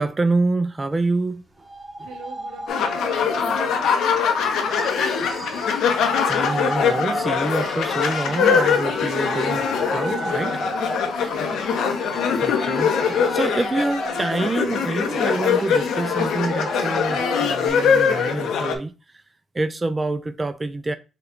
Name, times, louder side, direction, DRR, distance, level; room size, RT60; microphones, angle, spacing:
voice 1, 0.0-1.4 2.0-2.1 5.7-6.0 6.3-9.7 9.9-10.6 12.4-18.9 19.5-20.9, right 3 dB, 20° right, 0.3 m, -26 dB
sound 1, 1.6-17.7, right 1 dB, 5° right, 1.1 m, -33 dB
voice 2, 2.0-5.2 11.2-11.7, right 5 dB, 85° right, 0.8 m, -43 dB
sound 2, 2.7-18.8, left 6 dB, 75° left, 0.7 m, -22 dB
Wind instrument woodwind instrument, 8.9-12.3, right 2 dB, 55° right, 0.7 m, -39 dB
5.5 x 2.3 x 3.6 m
cardioid pair, 90°, 0 cm